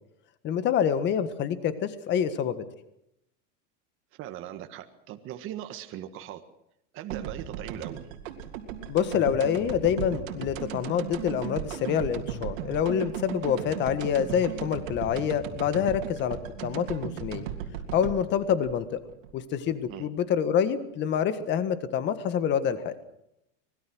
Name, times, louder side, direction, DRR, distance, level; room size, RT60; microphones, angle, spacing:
voice 1, 0.4-2.6 8.9-16.4 16.6-17.5 17.9-19.0 19.3-22.9, left 8 dB, 30° left, 11 dB, 1.6 m, -26 dB
voice 2, 4.2-6.4 6.9-8.0 19.9-20.1, right 12 dB, 30° right, 7 dB, 1.6 m, -39 dB
sound 1, 7.1-19.9, right 9 dB, 80° right, 3.2 m, -37 dB
24.5 x 20.5 x 6.3 m, 0.81 s
supercardioid pair, 165°, 39 cm